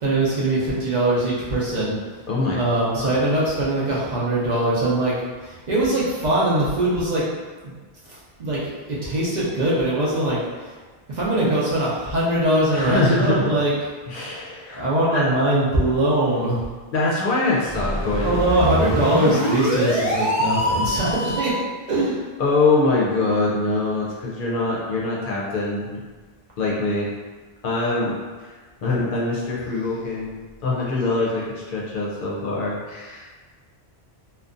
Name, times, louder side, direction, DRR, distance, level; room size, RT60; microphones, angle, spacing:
voice 1, 0.0-1.9 2.5-5.1 5.4-7.2 7.6-7.7 8.4-10.4 11.1-13.7 14.7-16.6 18.2-21.5 21.9-22.2, right 1 dB, 55° right, -7 dB, 0.6 m, -21 dB
voice 2, 2.3-2.6 3.0-3.2 12.7-13.5 14.1-14.8 15.1-15.3 16.9-18.3 22.4-26.0 26.6-27.1 27.6-28.1 28.4-28.5 28.8-30.3 30.6-33.3, left 2 dB, 65° left, -5 dB, 0.6 m, -23 dB
sound 1, 17.7-21.6, equal, 20° right, 0.7 m, -24 dB
2.5 x 2.2 x 2.4 m, 1.4 s
omnidirectional pair, 1.0 m